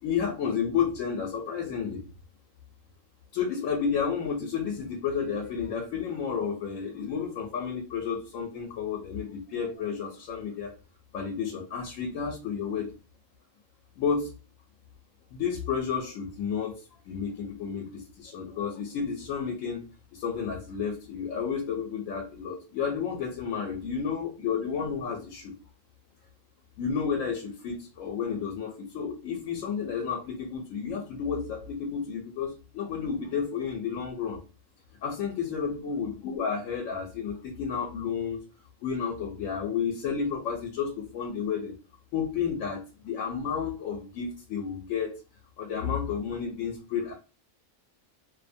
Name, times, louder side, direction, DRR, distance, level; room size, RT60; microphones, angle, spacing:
voice 1, 0.0-2.0 3.3-10.7 11.1-12.9 14.0-14.3 15.3-16.8 17.1-19.8 20.1-25.5 26.8-34.4 35.0-38.4 38.8-41.7 42.1-45.1 45.6-47.1, left 6 dB, 80° left, 2 dB, 0.9 m, -31 dB
2.5 x 2.0 x 2.6 m, 0.33 s
omnidirectional pair, 1.4 m